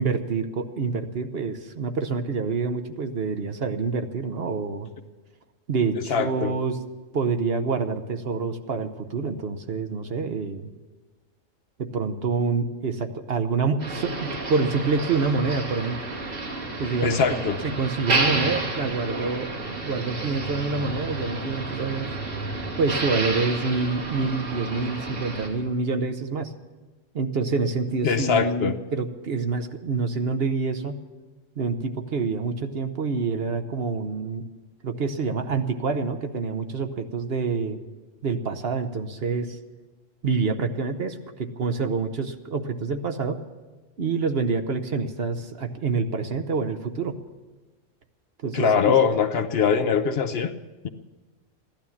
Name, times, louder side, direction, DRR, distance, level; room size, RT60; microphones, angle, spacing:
voice 1, 0.0-4.9 5.7-6.8 7.1-10.7 11.8-16.0 16.8-17.2 17.6-19.5 19.8-22.2 22.8-26.5 27.1-31.0 31.6-34.5 34.8-37.8 38.2-39.6 40.2-43.4 44.0-47.2 48.4-48.9, right 4 dB, 55° right, 7 dB, 1.0 m, -27 dB
voice 2, 6.1-6.5 17.0-17.6 28.0-28.7 48.5-50.5 50.8-50.9, left 6 dB, 60° left, 9 dB, 0.8 m, -22 dB
Motor vehicle (road), 13.8-25.5, right 2 dB, 80° right, 3.3 m, -30 dB
16.0 x 12.0 x 7.2 m, 1.3 s
omnidirectional pair, 1.3 m